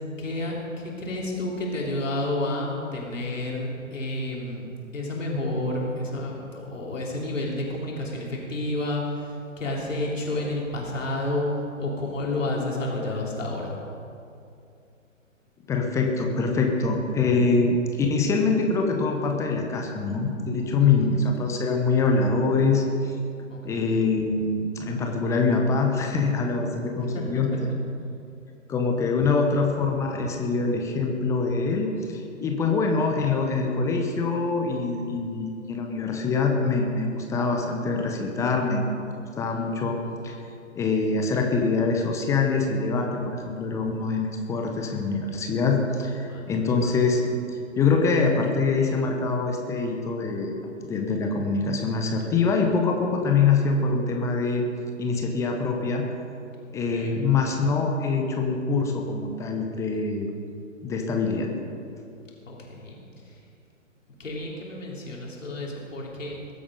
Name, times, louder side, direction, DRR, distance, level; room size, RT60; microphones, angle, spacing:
voice 1, 0.2-13.7 20.8-21.1 23.5-24.1 27.1-27.8 39.5-39.6 46.3-46.7 56.6-57.2 62.5-63.4 64.2-66.4, left 1 dB, 70° left, -3 dB, 3.7 m, -31 dB
voice 2, 15.7-23.2 23.6-27.5 28.7-38.8 39.1-40.0 40.2-40.4 40.8-47.2 47.8-54.6 55.0-56.0 56.7-60.3 60.8-61.5, left 4 dB, 5° left, 2 dB, 0.7 m, -24 dB
21.5 x 8.7 x 5.2 m, 2.5 s
figure-of-eight pair, 125°, 40 cm